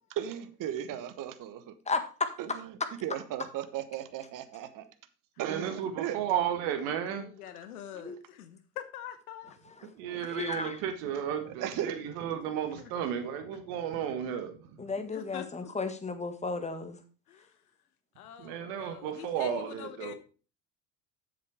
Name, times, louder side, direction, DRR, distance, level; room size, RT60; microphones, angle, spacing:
voice 1, 0.1-1.8 2.4-4.9 5.4-6.2 11.4-12.0, right 10 dB, 45° right, 1.2 m, -36 dB
voice 2, 1.9-2.3 8.0-8.2 10.0-10.8 14.8-17.0, left 3 dB, 15° left, 1.6 m, -34 dB
voice 3, 5.4-7.3 9.9-14.7 18.4-20.1, right 9 dB, 70° right, 1.5 m, -33 dB
voice 4, 7.1-9.6 12.8-12.9 15.0-15.7 17.3-17.6 18.2-20.1, left 10 dB, 85° left, 1.0 m, -45 dB
7.6 x 6.9 x 4.8 m
hypercardioid pair, 75°, 43 cm